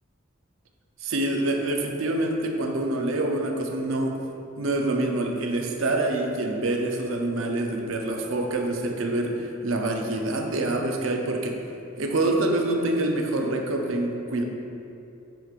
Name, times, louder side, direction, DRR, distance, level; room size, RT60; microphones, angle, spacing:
voice 1, 1.0-4.2 4.6-11.6 12.0-14.4, right 2 dB, 70° right, 2 dB, 0.6 m, -26 dB
7.7 x 5.0 x 2.5 m, 2.7 s
head